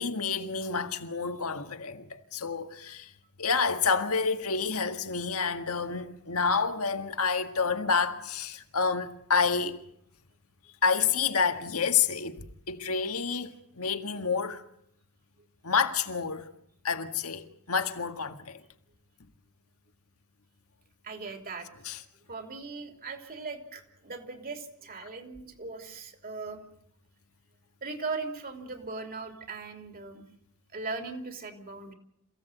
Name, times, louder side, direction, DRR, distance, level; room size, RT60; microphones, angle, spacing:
voice 1, 0.0-3.1 3.4-9.8 10.8-14.6 15.6-16.5 16.8-18.6 21.8-22.0, left 5 dB, 70° left, 1.8 m, -29 dB
voice 2, 21.0-21.7 22.3-26.6 27.8-30.2 30.7-31.9, right 3 dB, 45° right, 3.3 m, -39 dB
28.0 x 16.5 x 8.1 m
head